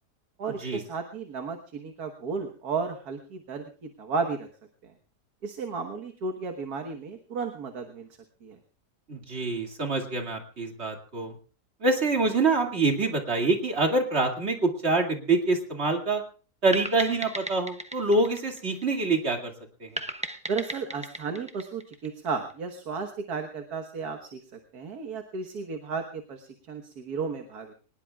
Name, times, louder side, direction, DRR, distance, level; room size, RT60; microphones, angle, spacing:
voice 1, 0.4-4.5 4.8-4.9 5.4-8.1 8.4-8.6 20.5-27.7, right 5 dB, 65° right, 5 dB, 1.9 m, -34 dB
voice 2, 9.1-11.3 11.8-16.2 16.6-19.5 19.8-19.9, right 3 dB, 40° right, 3 dB, 2.6 m, -25 dB
sound 1, 16.7-19.3 20.0-22.5, right 1 dB, 5° right, 0.6 m, -37 dB
24.0 x 20.0 x 2.4 m, 0.37 s
omnidirectional pair, 1.8 m